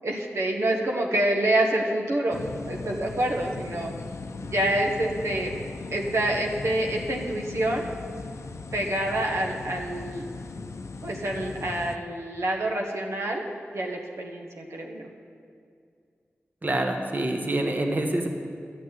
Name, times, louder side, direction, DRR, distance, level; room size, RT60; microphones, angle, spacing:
voice 1, 0.0-2.4 2.7-3.9 4.4-5.5 5.9-7.9 8.7-10.2 11.0-13.4 13.7-15.1, right 1 dB, 80° right, 0 dB, 1.3 m, -27 dB
sound 1, 2.3-12.0, left 3 dB, 80° left, 0.5 m, -38 dB
voice 2, 16.6-18.3, right 1 dB, 40° right, 3 dB, 1.3 m, -26 dB
12.0 x 6.4 x 9.0 m, 2.2 s
cardioid pair, 50°, 5 cm